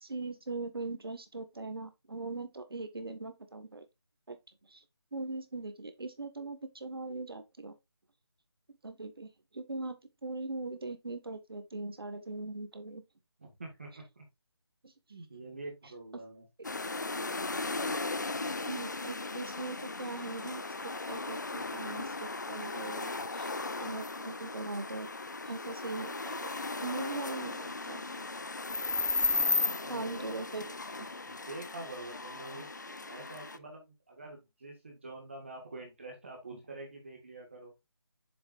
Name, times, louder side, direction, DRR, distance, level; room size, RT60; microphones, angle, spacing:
voice 1, 0.0-3.8 4.3-4.4 4.7-4.8 5.1-7.7 8.8-9.3 9.5-9.9 10.2-13.0 17.9-18.0 18.7-20.6 21.1-23.5 23.8-25.1 25.4-26.5 26.8-28.2 29.9-31.1, right 3 dB, 60° right, 1.6 m, -40 dB
voice 2, 13.4-14.2 15.1-16.5 29.2-30.4 31.3-37.7, right 2 dB, 25° right, 1.7 m, -46 dB
sound 1, 16.6-33.6, left 3 dB, 45° left, 0.5 m, -36 dB
7.1 x 6.8 x 2.5 m
figure-of-eight pair, 180°, 14 cm